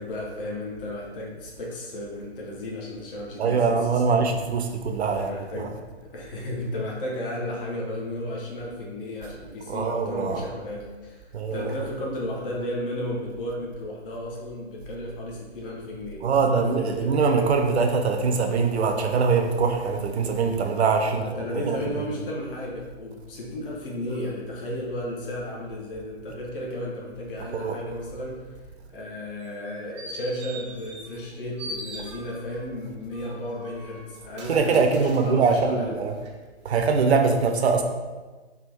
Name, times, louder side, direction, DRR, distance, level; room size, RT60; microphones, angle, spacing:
voice 1, 0.0-3.7 4.0-4.3 5.1-17.1 21.0-28.6 28.9-34.8 35.1-36.0, left 1 dB, 55° left, -3 dB, 0.8 m, -34 dB
voice 2, 3.4-5.7 9.7-10.4 11.3-11.7 16.2-21.3 21.5-22.1 27.5-27.8 34.4-36.2 36.6-37.8, right 5 dB, 70° right, 5 dB, 0.6 m, -23 dB
sound 1, 29.4-31.3 31.6-32.6 33.1-35.7 36.2-36.3, right 1 dB, 25° right, 0.4 m, -41 dB
3.5 x 2.4 x 3.1 m, 1.3 s
figure-of-eight pair, 130°, 33 cm